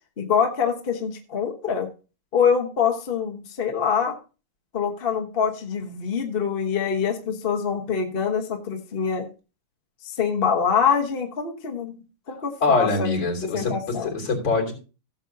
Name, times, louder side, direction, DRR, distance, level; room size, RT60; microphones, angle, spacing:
voice 1, 0.2-1.9 2.3-4.1 4.7-9.3 10.0-11.9 12.3-13.1 13.4-14.1, left 6 dB, 35° left, 2 dB, 1.1 m, -24 dB
voice 2, 12.6-13.7 14.0-14.7, left 3 dB, 60° left, 2 dB, 3.9 m, -23 dB
16.0 x 7.2 x 2.7 m, 0.32 s
omnidirectional pair, 2.4 m